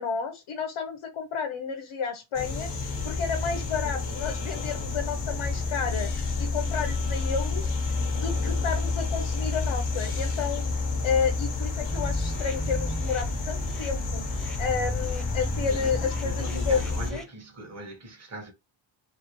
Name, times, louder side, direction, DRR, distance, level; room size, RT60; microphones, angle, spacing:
voice 1, 0.0-7.8 8.1-10.7 11.0-14.3 14.6-16.9 17.1-17.2, left 6 dB, 85° left, 1.0 m, -31 dB
sound 1, 2.3-17.1, left 3 dB, 60° left, 1.1 m, -30 dB
sound 2, 11.9-17.2, equal, ahead, 1.0 m, -35 dB
voice 2, 15.7-18.5, right 1 dB, 30° right, 1.7 m, -40 dB
4.3 x 3.4 x 3.0 m
wide cardioid pair, 165°, 48 cm